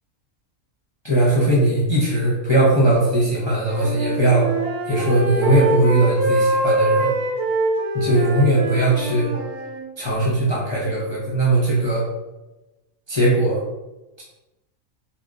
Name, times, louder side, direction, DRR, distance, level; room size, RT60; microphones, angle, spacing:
voice 1, 1.0-4.5 4.9-7.1 7.9-9.3 10.0-12.0 13.1-13.6, right 1 dB, 45° left, -6 dB, 0.3 m, -19 dB
Wind instrument woodwind instrument, 3.4-9.8, right 2 dB, 65° right, 1.1 m, -24 dB
4.1 x 2.5 x 2.4 m, 1.0 s
omnidirectional pair, 1.5 m